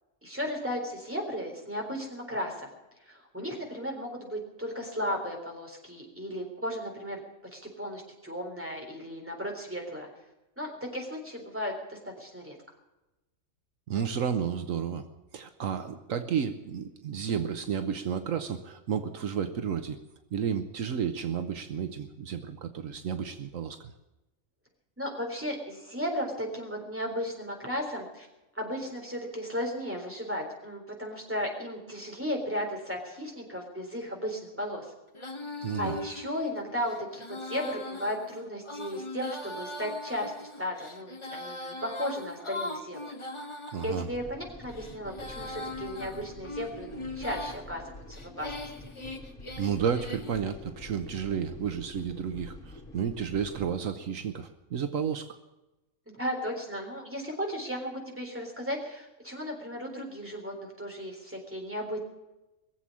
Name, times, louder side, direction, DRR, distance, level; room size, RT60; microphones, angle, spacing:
voice 1, 0.2-2.7 3.1-7.2 7.5-10.1 10.6-12.6 25.0-28.3 28.5-34.9 35.8-43.0 43.8-48.5 56.1-62.0, equal, 10° right, 0 dB, 3.7 m, -35 dB
voice 2, 13.9-15.1 15.3-20.0 20.3-23.9 35.6-36.0 43.7-44.1 49.6-55.3, right 7 dB, 75° right, 9 dB, 1.2 m, -32 dB
Female singing, 35.1-44.1 44.6-47.6 48.1-50.4, left 2 dB, 20° left, 1.4 m, -40 dB
sound 1, 44.1-53.8, left 2 dB, 70° left, 3.0 m, -47 dB
21.0 x 7.7 x 8.5 m, 1.0 s
omnidirectional pair, 1.4 m